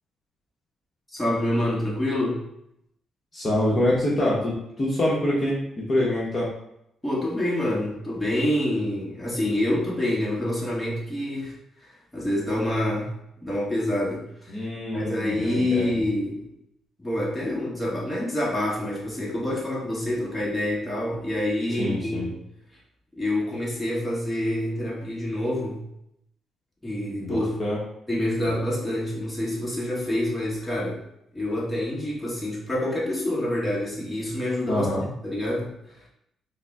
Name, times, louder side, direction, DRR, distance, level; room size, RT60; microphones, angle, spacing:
voice 1, 1.1-2.4 7.0-11.6 12.1-13.1 13.4-14.6 14.9-16.4 17.0-22.4 23.2-25.8 26.8-27.5 28.1-31.0 31.3-34.9 35.2-35.7, left 1 dB, 10° left, -5 dB, 1.3 m, -27 dB
voice 2, 3.3-6.5 14.5-16.0 21.7-22.3 27.2-27.8 34.7-35.1, left 1 dB, 35° left, -6 dB, 1.0 m, -25 dB
3.8 x 2.1 x 3.5 m, 0.77 s
cardioid pair, 90°, 0 cm